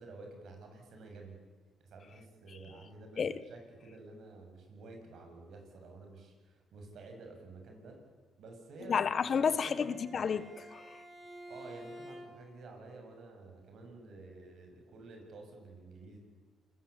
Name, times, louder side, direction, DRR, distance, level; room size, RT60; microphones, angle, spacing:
voice 1, 0.0-1.4 1.8-8.0 8.4-9.0 9.3-10.1 11.5-16.2, right 3 dB, 70° right, 7.5 m, -51 dB
voice 2, 8.9-10.9, left 6 dB, 50° left, 1.4 m, -31 dB
Bowed string instrument, 9.2-12.6, equal, 30° right, 6.1 m, -51 dB
27.5 x 21.5 x 8.5 m
cardioid pair, 90°, 0 cm